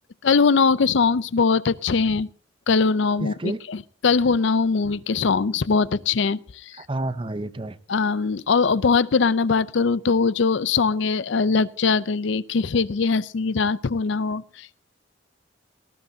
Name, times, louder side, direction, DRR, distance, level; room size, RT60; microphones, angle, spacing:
voice 1, 0.2-2.3 2.7-6.8 7.9-14.8, left 4 dB, 65° left, 19 dB, 0.5 m, -21 dB
voice 2, 3.2-3.6 6.9-7.8, right 2 dB, 25° right, 13 dB, 0.6 m, -29 dB
18.5 x 13.5 x 2.7 m, 0.44 s
head